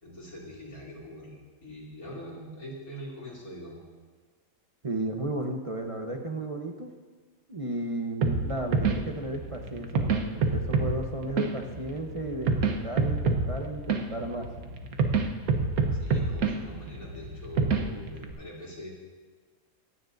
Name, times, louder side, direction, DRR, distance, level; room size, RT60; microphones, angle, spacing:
voice 1, 0.0-3.8 15.9-18.9, equal, 80° left, -5 dB, 3.4 m, -43 dB
voice 2, 4.8-6.9 7.5-14.5, right 1 dB, 30° right, 2 dB, 0.7 m, -34 dB
sound 1, 8.2-18.3, right 4 dB, 80° right, 1.5 m, -28 dB
24.5 x 9.9 x 2.6 m, 1.4 s
omnidirectional pair, 1.5 m